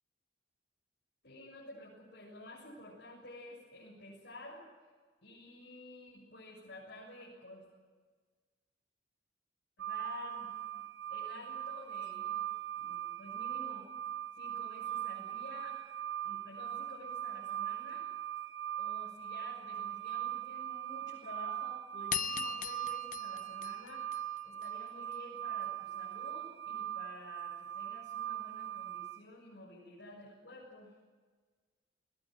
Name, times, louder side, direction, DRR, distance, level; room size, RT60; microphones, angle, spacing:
voice 1, 1.2-4.7 5.2-7.7 9.8-10.8 11.1-12.4 12.8-13.9 14.3-15.8 16.2-18.1 18.8-24.0 24.4-30.9, left 1 dB, 65° left, -5 dB, 7.0 m, -51 dB
sound 1, 9.8-29.2, right 12 dB, 75° right, 0.8 m, -40 dB
sound 2, 22.1-24.7, left 7 dB, 45° left, 0.9 m, -39 dB
21.0 x 19.0 x 9.3 m, 1.5 s
head